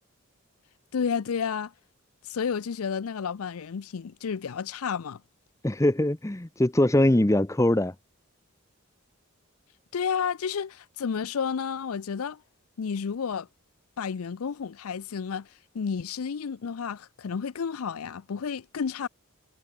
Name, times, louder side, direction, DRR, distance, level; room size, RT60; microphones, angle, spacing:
voice 1, 0.9-1.7 2.2-5.2 9.9-12.4 12.8-13.5 14.0-15.5 15.7-19.1, left 6 dB, 85° left, 0.5 m, -31 dB
voice 2, 5.6-7.9, left 1 dB, 15° left, 0.6 m, -22 dB
head